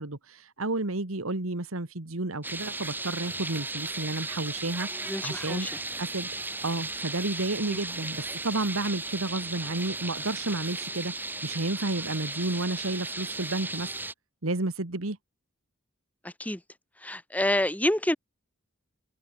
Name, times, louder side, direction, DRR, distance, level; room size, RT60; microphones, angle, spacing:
voice 1, 0.0-5.7 6.0-13.9 14.4-15.2, right 2 dB, 85° right, 1.9 m, -31 dB
sound 1, 2.4-14.1, right 2 dB, 10° right, 3.4 m, -36 dB
voice 2, 5.1-5.8 7.7-7.8 16.2-16.6 17.0-18.2, left 1 dB, 5° left, 1.7 m, -28 dB
head